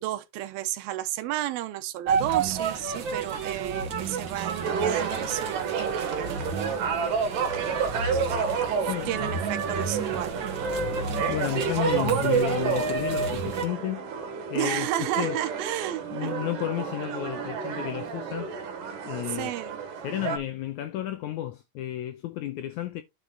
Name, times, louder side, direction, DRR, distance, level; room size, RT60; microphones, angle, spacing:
voice 1, 0.0-6.6 8.1-8.4 8.8-10.3 14.5-16.3 19.3-19.8, right 14 dB, 85° right, 2.7 m, -32 dB
sound 1, 2.1-13.7, right 5 dB, 50° right, 1.5 m, -31 dB
sound 2, 4.6-20.4, right 6 dB, 70° right, 2.9 m, -30 dB
voice 2, 8.0-8.3 8.9-9.2 11.3-14.1 14.5-15.4 16.1-18.5 19.0-19.5 20.0-23.0, left 13 dB, 80° left, 1.7 m, -32 dB
9.6 x 5.1 x 3.8 m
omnidirectional pair, 4.1 m